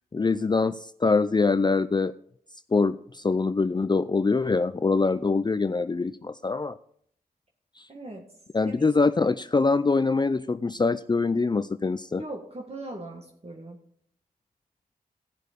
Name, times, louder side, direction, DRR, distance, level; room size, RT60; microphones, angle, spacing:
voice 1, 0.1-2.1 2.7-6.8 7.8-7.9 8.5-12.2, left 4 dB, 25° left, 13 dB, 0.5 m, -24 dB
voice 2, 7.9-8.3 8.6-8.9 12.2-13.8, right 1 dB, 40° right, 1 dB, 1.8 m, -39 dB
15.0 x 6.4 x 5.2 m, 0.63 s
cardioid pair, 50°, 16 cm